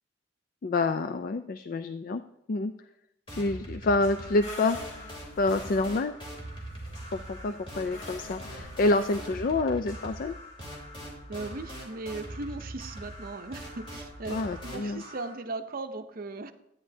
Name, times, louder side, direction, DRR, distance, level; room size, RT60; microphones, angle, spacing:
voice 1, 0.6-2.2 2.5-2.7 3.3-4.8 5.4-6.1 7.1-10.3 14.3-15.0, left 2 dB, 50° left, 10 dB, 0.4 m, -27 dB
sound 1, 3.3-15.3, right 1 dB, 30° left, 3.2 m, -42 dB
sound 2, 4.4-9.6, left 2 dB, 80° left, 2.4 m, -46 dB
voice 2, 11.3-14.4 14.6-16.5, right 3 dB, 50° right, 9 dB, 0.6 m, -38 dB
12.5 x 9.6 x 2.7 m, 0.82 s
head